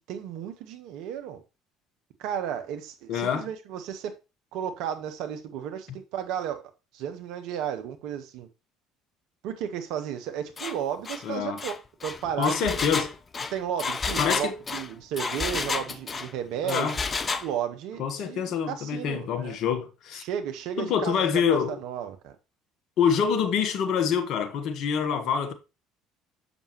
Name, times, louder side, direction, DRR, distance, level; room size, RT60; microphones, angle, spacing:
voice 1, 0.1-1.4 2.2-4.2 4.5-6.6 6.9-8.5 9.4-11.8 12.0-12.8 13.5-17.0 17.4-19.6 20.2-22.3, right 9 dB, 60° right, 1.0 m, -33 dB
voice 2, 3.1-3.5 11.2-11.6 12.4-13.1 14.2-14.6 16.6-17.0 18.0-20.2 20.8-21.8 23.0-25.5, left 7 dB, 50° left, 1.1 m, -26 dB
Engine, 10.6-10.8 11.1-11.2 11.6-16.3 16.7-17.5, left 4 dB, 30° left, 0.6 m, -31 dB
7.2 x 6.1 x 2.9 m
figure-of-eight pair, 55°, 0 cm